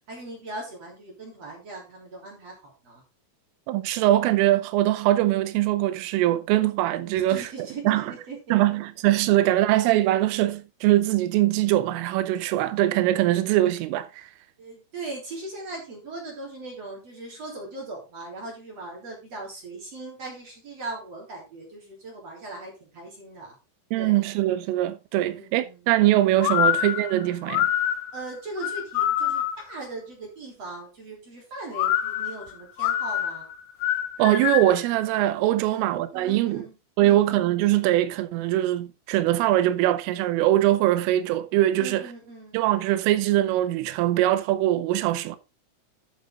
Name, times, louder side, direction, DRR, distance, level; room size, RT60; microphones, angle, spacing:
voice 1, 0.1-3.0 7.1-8.6 14.6-23.6 24.0-24.2 25.2-25.9 26.5-26.7 28.1-33.5 35.6-35.8 36.1-36.8 37.0-37.3 41.8-42.6, right 2 dB, 35° right, 4.1 m, -39 dB
voice 2, 3.7-8.1 8.5-14.3 23.9-27.7 34.2-36.6 37.0-42.0 42.5-45.4, right 14 dB, 90° right, 3.3 m, -22 dB
sound 1, 26.4-29.7 31.7-34.8, left 11 dB, 90° left, 3.5 m, -25 dB
11.5 x 6.6 x 3.8 m
omnidirectional pair, 5.8 m